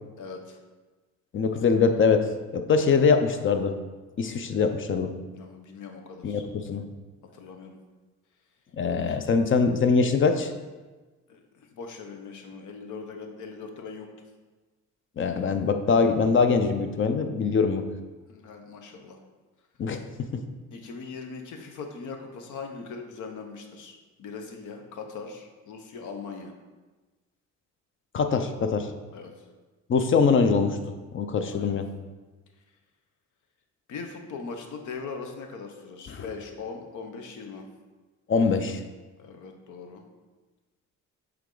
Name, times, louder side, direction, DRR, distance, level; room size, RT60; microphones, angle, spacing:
voice 1, 0.2-0.6 5.3-6.4 7.3-7.8 9.1-9.2 11.3-14.1 18.3-19.2 20.7-26.5 29.1-29.5 31.5-31.8 33.9-37.7 38.4-38.5 39.2-40.0, left 4 dB, 75° left, 5 dB, 0.9 m, -40 dB
voice 2, 1.3-2.3 2.5-3.8 4.2-5.1 6.2-6.8 8.8-10.5 15.2-17.9 19.8-20.3 28.1-28.9 29.9-30.8 31.1-31.9 36.1-36.2 38.3-38.8, left 5 dB, 40° left, 8 dB, 0.6 m, -23 dB
8.0 x 3.5 x 3.9 m, 1.3 s
cardioid pair, 90°, 30 cm